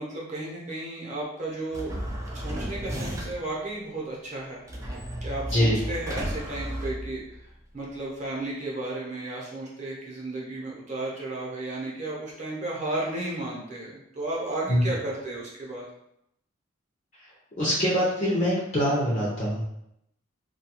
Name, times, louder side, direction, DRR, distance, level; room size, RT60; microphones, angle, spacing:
voice 1, 0.0-2.1 2.3-4.6 5.2-15.9, right 2 dB, 35° right, -5 dB, 0.7 m, -34 dB
sound 1, 1.7-3.6 4.7-7.5, equal, 15° right, 0.3 m, -34 dB
voice 2, 17.6-19.6, equal, 35° left, -6 dB, 0.5 m, -24 dB
2.4 x 2.2 x 2.8 m, 0.79 s
head